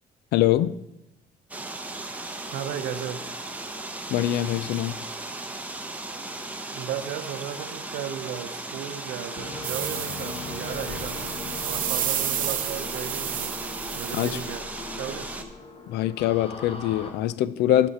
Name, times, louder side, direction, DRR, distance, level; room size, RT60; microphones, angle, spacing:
voice 1, 0.3-0.8 4.1-5.0 14.1-14.4 15.9-17.9, left 13 dB, 75° left, 0.5 m, -23 dB
sound 1, 1.5-15.4, right 2 dB, 10° right, 0.8 m, -36 dB
voice 2, 2.5-3.2 6.7-11.3 11.6-13.6 13.9-14.7 14.9-15.3, right 9 dB, 90° right, 0.7 m, -35 dB
sound 2, 9.4-17.1, left 3 dB, 35° left, 1.1 m, -39 dB
sound 3, 9.6-14.5, right 11 dB, 55° right, 0.6 m, -31 dB
12.5 x 5.1 x 4.2 m
cardioid pair, 110°, 17 cm